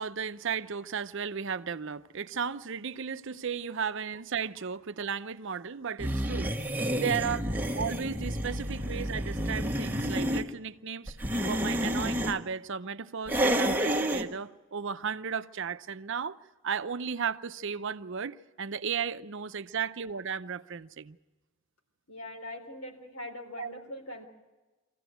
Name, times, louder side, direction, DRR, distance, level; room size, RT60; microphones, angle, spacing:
voice 1, 0.0-6.5 6.9-7.5 7.7-11.2 11.5-16.4 16.6-21.2 23.6-23.7, right 6 dB, 60° right, 0.6 m, -34 dB
sound 1, 6.0-10.4 11.1-12.4 13.3-14.3, equal, 10° right, 1.3 m, -29 dB
voice 2, 22.1-24.3, left 1 dB, 80° left, 4.1 m, -42 dB
24.0 x 15.5 x 9.2 m
head